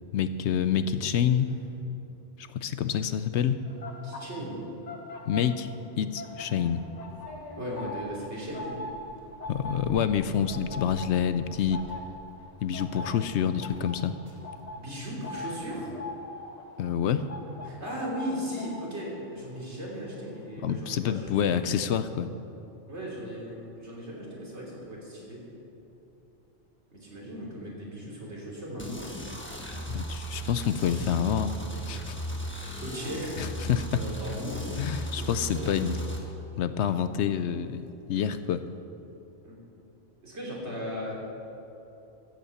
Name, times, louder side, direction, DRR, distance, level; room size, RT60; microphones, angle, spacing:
voice 1, 0.1-1.5 2.4-3.6 5.3-5.7 6.0-6.8 9.5-11.8 12.6-14.1 16.8-17.3 20.6-22.3 29.9-31.6 31.9-32.2 32.6-32.8 33.4-34.0 34.8-36.0 36.6-38.6, left 8 dB, 70° left, 12 dB, 0.9 m, -27 dB
sound 1, 3.7-5.9 6.1-21.0 21.3-21.6, left 2 dB, 35° left, 1.3 m, -42 dB
voice 2, 4.0-4.6 7.6-8.9 12.9-13.2 14.7-15.9 17.6-21.8 22.9-25.4 26.9-29.0 32.8-34.9 35.2-36.0 39.4-39.6 40.2-41.2, equal, 65° right, -4 dB, 3.6 m, -37 dB
sound 2, 6.3-15.9, equal, 30° right, 2.1 m, -51 dB
sound 3, 28.8-36.2, equal, 10° left, 1.3 m, -36 dB
14.5 x 8.3 x 7.1 m, 3.0 s
omnidirectional pair, 1.2 m